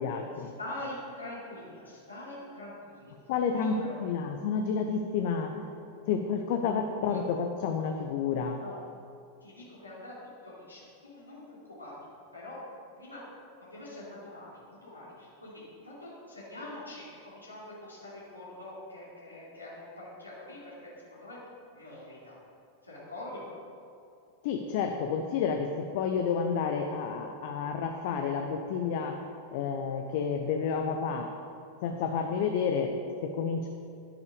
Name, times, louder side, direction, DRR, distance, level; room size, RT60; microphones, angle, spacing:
voice 1, 0.0-0.5 3.3-5.7 6.1-8.6 24.4-29.2 29.5-31.3 31.8-33.7, left 6 dB, 50° left, 4 dB, 0.8 m, -30 dB
voice 2, 0.6-3.1 3.5-4.0 6.8-7.2 8.6-8.8 9.4-10.1 10.4-11.4 11.7-11.9 12.3-12.6 13.0-13.2 13.6-21.4 21.7-22.4 22.8-23.4, left 1 dB, 80° left, -8 dB, 3.1 m, -44 dB
11.0 x 10.5 x 5.0 m, 2.5 s
figure-of-eight pair, 90°, 0 cm